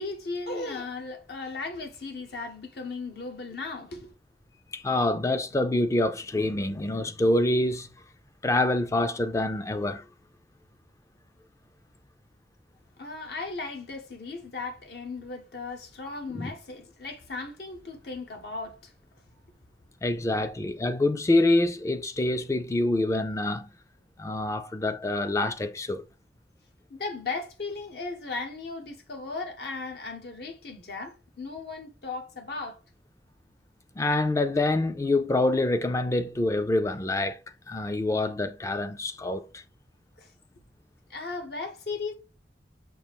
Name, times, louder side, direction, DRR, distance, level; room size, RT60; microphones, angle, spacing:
voice 1, 0.0-4.1 13.0-18.9 26.9-32.8 40.2-40.3 41.1-42.1, left 3 dB, 65° left, 0.7 m, -36 dB
voice 2, 4.7-7.9 8.4-10.0 16.3-16.5 20.0-23.7 24.2-26.0 34.0-37.4 37.7-39.6, left 2 dB, 15° left, 0.3 m, -26 dB
6.0 x 2.4 x 3.4 m
head